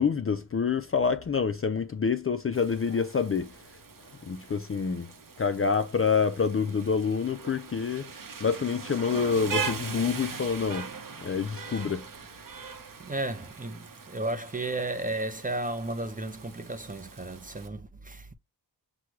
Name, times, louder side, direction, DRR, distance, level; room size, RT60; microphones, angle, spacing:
voice 1, 0.0-3.6 4.2-5.1 5.4-8.1 8.4-10.9 11.2-12.1, left 5 dB, 30° left, 0.4 m, -27 dB
Rain, 2.5-17.7, right 5 dB, 45° right, 0.9 m, -40 dB
voice 2, 13.0-18.3, right 2 dB, 20° right, 0.6 m, -33 dB
6.1 x 2.3 x 3.0 m
wide cardioid pair, 75°, 45 cm